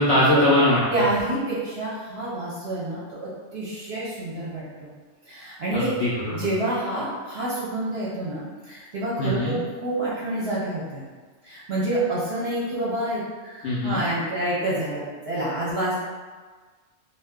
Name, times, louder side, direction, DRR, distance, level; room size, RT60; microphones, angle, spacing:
voice 1, 0.0-0.8 5.7-6.5 9.2-9.5 13.6-14.0, left 1 dB, 65° left, -6 dB, 0.7 m, -21 dB
voice 2, 0.9-4.9 5.3-6.0 6.3-11.0 11.4-16.0, right 1 dB, 55° right, -8 dB, 0.8 m, -28 dB
2.5 x 2.2 x 3.5 m, 1.4 s
omnidirectional pair, 1.5 m